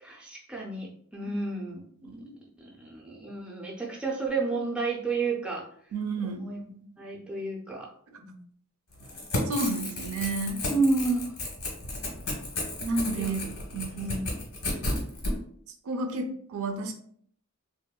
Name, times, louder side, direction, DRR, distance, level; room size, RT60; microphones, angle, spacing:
voice 1, 0.0-2.1 2.6-5.6 6.2-7.9 8.2-8.4 10.7-11.4 13.2-13.3 14.0-14.3, right 3 dB, 5° right, -3 dB, 0.4 m, -31 dB
voice 2, 5.9-6.4 9.5-10.6 12.8-13.4 13.7-14.1 15.9-16.9, right 3 dB, 70° right, 6 dB, 0.4 m, -31 dB
Crackle / Tearing, 9.0-15.3, left 1 dB, 90° left, 1.1 m, -33 dB
3.0 x 2.0 x 2.2 m, 0.62 s
head